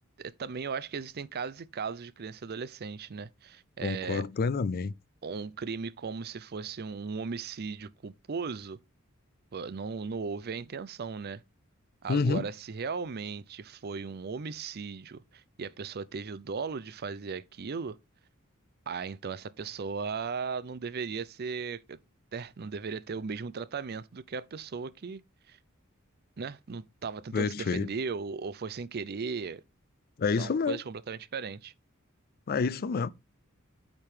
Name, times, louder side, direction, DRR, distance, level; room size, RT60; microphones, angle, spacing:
voice 1, 0.2-4.2 5.2-8.8 9.5-11.4 12.0-18.0 18.9-22.0 22.3-25.6 26.4-29.6 30.4-31.7, right 5 dB, 45° right, 0.5 m, -37 dB
voice 2, 3.8-4.9 12.1-12.5 27.3-27.9 30.2-30.8 32.5-33.1, left 4 dB, 45° left, 0.4 m, -28 dB
9.0 x 3.7 x 4.9 m
head